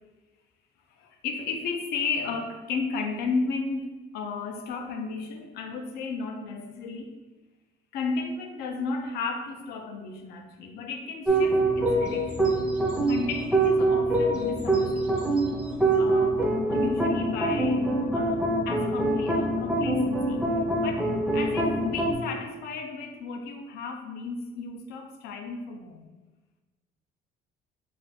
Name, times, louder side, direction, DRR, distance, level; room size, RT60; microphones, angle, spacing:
voice 1, 1.0-7.1 7.9-12.5 13.1-15.2 15.9-20.4 20.8-26.0, left 4 dB, 75° left, 5 dB, 0.4 m, -34 dB
sound 1, 11.3-22.1, right 2 dB, 5° right, 0.4 m, -24 dB
2.4 x 2.4 x 3.4 m, 1.2 s
cardioid pair, 130°, 17 cm